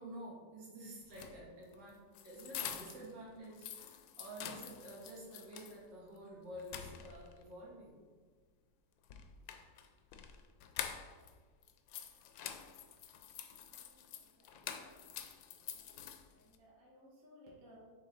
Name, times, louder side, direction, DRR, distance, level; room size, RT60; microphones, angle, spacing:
voice 1, 0.0-8.0, right 1 dB, 75° right, -4 dB, 2.1 m, -50 dB
sound 1, 1.0-3.1 3.4-5.8 6.2-6.3 6.6-7.4 9.0-11.3 11.6-16.6, left 9 dB, 85° left, 1.3 m, -47 dB
voice 2, 13.8-15.2 15.5-15.7 16.3-17.8, equal, 50° right, -3 dB, 1.7 m, -62 dB
6.6 x 4.6 x 4.0 m, 1.5 s
omnidirectional pair, 2.0 m